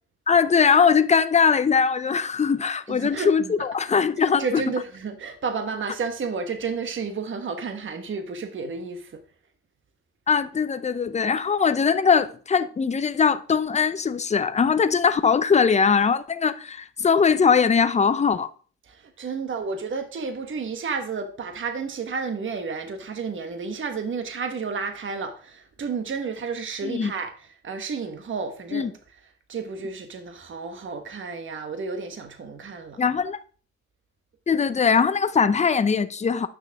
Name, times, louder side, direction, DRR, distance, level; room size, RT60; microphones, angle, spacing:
voice 1, 0.3-4.6 10.3-18.5 26.8-27.1 28.7-28.9 33.0-33.4 34.5-36.5, left 6 dB, 25° left, 0.6 m, -21 dB
voice 2, 2.9-3.5 4.2-9.2 18.9-27.3 27.6-28.9 29.5-33.0, right 5 dB, 40° right, 1.2 m, -31 dB
9.1 x 6.3 x 3.5 m
cardioid pair, 90°, 30 cm